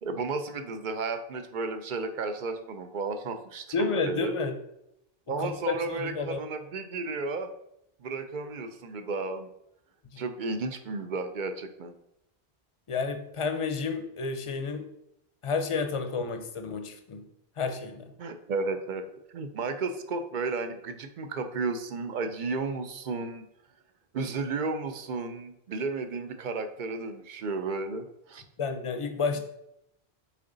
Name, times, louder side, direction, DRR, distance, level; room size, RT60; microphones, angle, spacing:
voice 1, 0.0-4.3 5.3-7.5 8.0-9.5 10.2-11.9 18.2-23.4 24.1-28.4, right 3 dB, 55° right, 8 dB, 0.7 m, -33 dB
voice 2, 3.7-4.5 5.4-6.4 10.1-10.2 12.9-14.9 15.4-17.3 17.6-18.1 28.6-29.4, left 4 dB, 35° left, 7 dB, 0.6 m, -30 dB
7.6 x 3.9 x 3.9 m, 0.81 s
omnidirectional pair, 1.1 m